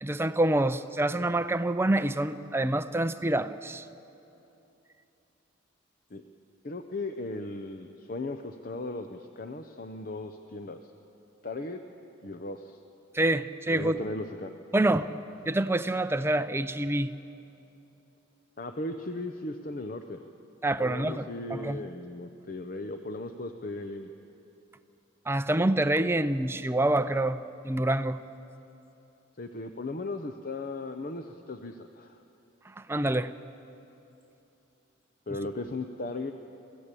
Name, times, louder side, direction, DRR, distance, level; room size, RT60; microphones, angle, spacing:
voice 1, 0.0-3.9 13.1-14.0 14.7-15.1 15.5-17.1 20.6-21.2 21.5-21.8 25.3-27.4 27.6-28.2 32.7-33.3, right 1 dB, 10° right, 11 dB, 0.5 m, -26 dB
voice 2, 6.6-10.9 11.4-11.8 12.2-12.8 13.7-14.5 18.6-20.2 20.8-24.1 29.4-32.2 35.3-36.3, left 2 dB, 45° left, 7 dB, 0.7 m, -37 dB
23.5 x 15.0 x 8.4 m, 2.9 s
head